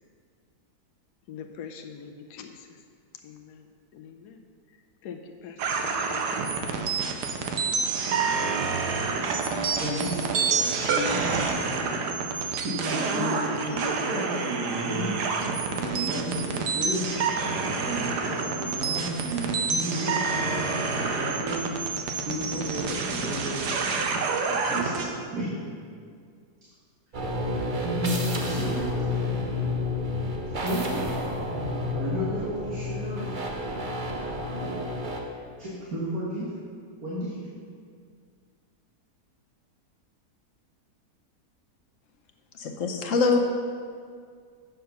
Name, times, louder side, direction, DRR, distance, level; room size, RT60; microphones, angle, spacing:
voice 1, 1.3-2.8 3.2-4.4 4.7-4.8 5.0-6.8, left 7 dB, 80° left, 5 dB, 1.2 m, -44 dB
sound 1, 5.6-25.1, right 4 dB, 85° right, 1.4 m, -28 dB
voice 2, 9.8-11.9 12.3-17.1 17.4-21.7 22.2-24.2 24.5-25.1 25.3-25.6 27.8-29.0 30.6-31.2 31.5-33.4 34.6-34.8 35.6-36.5 37.0-37.3, right 1 dB, 60° right, -7 dB, 2.0 m, -33 dB
sound 2, 27.1-35.2, left 2 dB, 40° right, 0.8 m, -30 dB
voice 3, 42.5-43.4, left 4 dB, 60° left, 3 dB, 1.0 m, -24 dB
8.0 x 6.5 x 5.7 m, 2.1 s
omnidirectional pair, 1.7 m